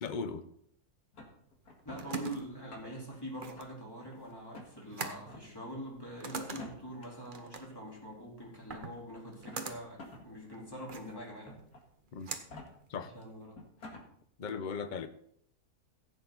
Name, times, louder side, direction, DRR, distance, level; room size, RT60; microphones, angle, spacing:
voice 1, 0.0-0.5 12.1-12.3 12.9-13.1 14.4-15.1, left 5 dB, 40° left, 10 dB, 0.8 m, -37 dB
sound 1, 1.1-2.1 2.5-3.1 3.6-4.1 4.5-4.7 5.2-5.5 6.4-7.1 8.1-8.2 9.3-10.3 10.7-10.8 11.4-11.8 12.3-12.7 13.2-13.3 13.5-14.1, left 2 dB, 75° left, 2.5 m, -49 dB
sound 2, 1.5-13.5, right 4 dB, 35° right, 1.1 m, -45 dB
voice 2, 1.8-11.6 13.1-13.6, equal, 15° left, -4 dB, 3.9 m, -44 dB
15.5 x 8.9 x 4.1 m, 0.68 s
omnidirectional pair, 1.6 m